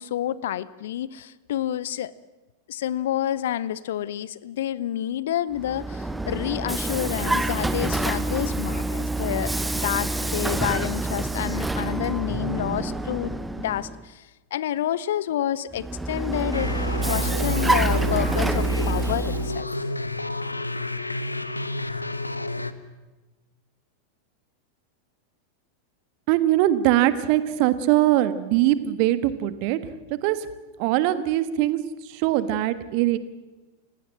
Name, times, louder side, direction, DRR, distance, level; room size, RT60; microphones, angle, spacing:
voice 1, 0.0-2.1 2.7-16.7 17.1-19.9, left 11 dB, 60° left, 20 dB, 0.7 m, -29 dB
Vehicle, 5.5-14.0 15.7-19.6, right 2 dB, 5° right, 1.2 m, -27 dB
sound 1, 16.5-22.7, left 2 dB, 85° left, 1.0 m, -30 dB
voice 2, 26.3-29.8 30.1-30.5 30.8-33.2, right 14 dB, 45° right, 13 dB, 1.5 m, -22 dB
29.5 x 17.0 x 7.7 m, 1.2 s
figure-of-eight pair, 90°, 0 cm